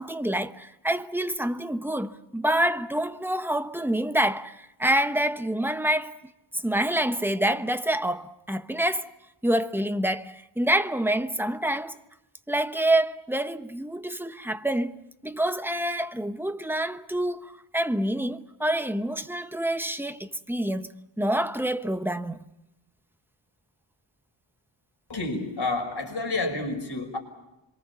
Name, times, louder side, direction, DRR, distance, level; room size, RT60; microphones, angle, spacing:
voice 1, 0.0-6.2 6.5-9.1 9.4-11.9 12.5-15.0 15.2-22.4, right 1 dB, 5° right, 1.0 m, -27 dB
voice 2, 25.1-27.2, left 2 dB, 60° left, 5.8 m, -29 dB
26.5 x 23.5 x 7.2 m
wide cardioid pair, 115°, 45 cm